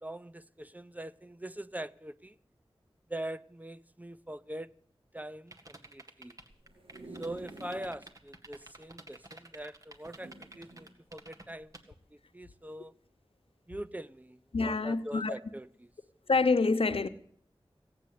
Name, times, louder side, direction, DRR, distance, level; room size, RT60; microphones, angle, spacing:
voice 1, 0.0-2.4 3.1-4.7 5.1-6.4 7.2-11.8 12.1-12.9 13.7-15.9, right 1 dB, 15° right, 0.5 m, -42 dB
sound 1, 5.5-11.8, right 2 dB, 35° right, 1.8 m, -50 dB
sound 2, 6.5-8.0 8.5-8.6 8.8-8.9 10.0-10.9 11.6-11.8, right 2 dB, 75° right, 2.8 m, -49 dB
voice 2, 14.5-15.3 16.3-17.1, left 3 dB, 70° left, 0.9 m, -26 dB
17.0 x 8.2 x 9.4 m
wide cardioid pair, 50°, 10 cm